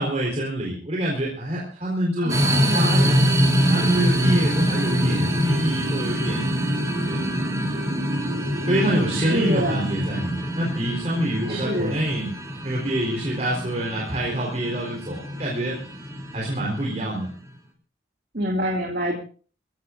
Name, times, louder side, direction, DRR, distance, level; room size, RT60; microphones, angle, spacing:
voice 1, 0.0-3.3 3.7-6.5 7.1-7.4 8.7-12.3 12.6-15.7 16.3-17.3, right 1 dB, 40° right, -3 dB, 4.0 m, -26 dB
voice 2, 2.2-3.2 9.2-9.8 11.5-12.0 18.3-19.2, equal, 55° right, 0 dB, 2.4 m, -26 dB
sound 1, 2.3-17.4, equal, 20° right, 2.5 m, -25 dB
sound 2, 3.0-10.2, right 1 dB, 85° right, 1.1 m, -34 dB
23.0 x 16.0 x 2.6 m, 0.39 s
head